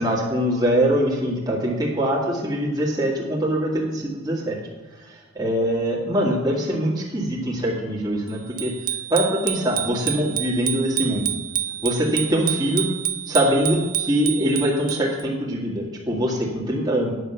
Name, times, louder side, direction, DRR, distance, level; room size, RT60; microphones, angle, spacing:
voice 1, 0.0-4.6 5.0-8.7 9.1-11.3 11.8-12.9 13.3-17.1, equal, 20° right, -4 dB, 2.0 m, -23 dB
Bicycle bell, 8.6-15.2, right 11 dB, 40° right, 0.4 m, -28 dB
9.6 x 6.6 x 6.9 m, 1.2 s
head